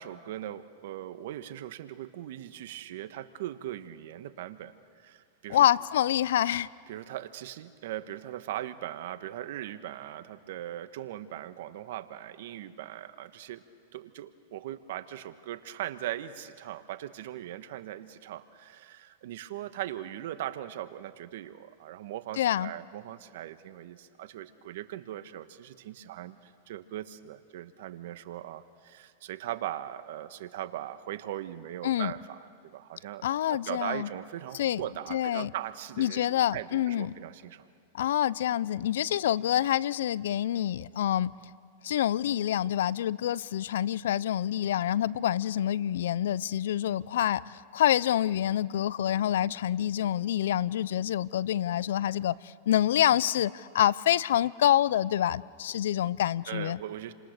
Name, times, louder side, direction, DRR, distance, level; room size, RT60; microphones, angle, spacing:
voice 1, 0.0-5.6 6.9-13.6 13.9-37.7 56.5-57.1, right 12 dB, 65° right, 11 dB, 1.4 m, -39 dB
voice 2, 5.5-6.7 22.4-22.7 31.8-32.1 33.2-34.1 34.5-34.8 35.1-35.5 36.0-37.1 37.9-41.3 41.8-56.8, left 11 dB, 75° left, 21 dB, 0.6 m, -27 dB
29.5 x 26.0 x 6.8 m, 2.2 s
hypercardioid pair, 120°, 0 cm